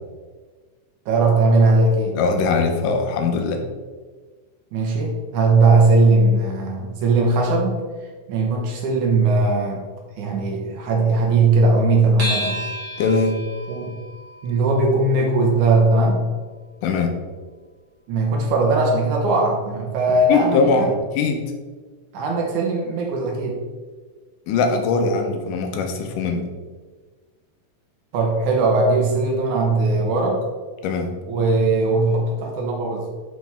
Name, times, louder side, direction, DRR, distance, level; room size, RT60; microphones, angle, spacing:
voice 1, 1.1-2.2 4.7-7.8 8.3-9.8 10.2-12.6 13.7-14.0 14.4-16.3 18.1-20.9 22.1-23.6 28.1-30.4 31.3-33.1, right 2 dB, 70° right, 0 dB, 2.3 m, -19 dB
voice 2, 2.2-3.6 13.0-13.4 16.8-17.1 20.3-21.5 24.5-26.5 30.8-31.1, left 4 dB, 80° left, 4 dB, 2.4 m, -21 dB
sound 1, 12.2-16.9, equal, 45° right, 1.8 m, -33 dB
10.5 x 4.8 x 3.5 m, 1.4 s
omnidirectional pair, 3.9 m